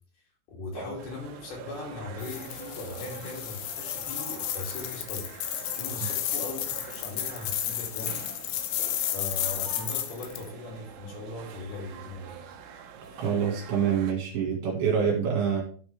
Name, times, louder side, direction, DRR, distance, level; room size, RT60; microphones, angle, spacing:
voice 1, 0.5-8.2 9.1-12.3, left 3 dB, 55° left, -2 dB, 4.2 m, -39 dB
sound 1, 1.0-14.1, right 7 dB, 85° right, 2.0 m, -45 dB
sound 2, 2.2-10.4, left 11 dB, 85° left, 3.4 m, -33 dB
voice 2, 13.2-15.6, right 7 dB, 60° right, -1 dB, 3.4 m, -26 dB
12.0 x 6.0 x 3.4 m, 0.44 s
omnidirectional pair, 5.6 m